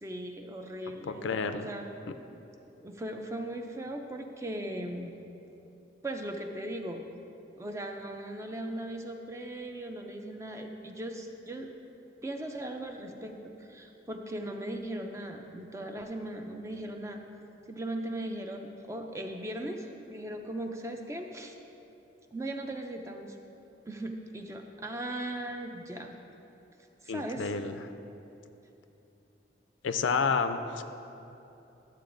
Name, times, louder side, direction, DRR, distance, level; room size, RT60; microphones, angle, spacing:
voice 1, 0.0-2.0 2.8-5.1 6.0-7.0 7.6-11.7 12.2-17.2 17.7-21.5 22.3-23.4 23.9-26.2 27.0-27.5, right 1 dB, 15° right, 4 dB, 0.4 m, -38 dB
voice 2, 1.2-1.7 27.1-27.8 29.8-30.8, left 5 dB, 80° left, 9 dB, 0.4 m, -29 dB
12.0 x 7.5 x 2.6 m, 3.0 s
head